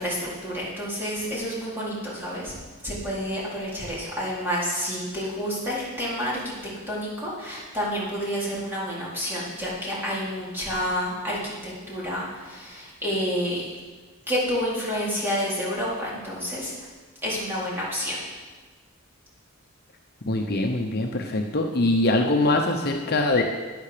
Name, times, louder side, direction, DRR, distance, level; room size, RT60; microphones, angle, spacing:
voice 1, 0.0-2.5 2.8-6.5 6.9-13.6 14.3-16.7 17.2-18.2, equal, 10° right, -7 dB, 4.0 m, -29 dB
voice 2, 20.3-23.4, left 2 dB, 50° left, 2 dB, 0.9 m, -23 dB
12.5 x 10.0 x 5.1 m, 1.3 s
head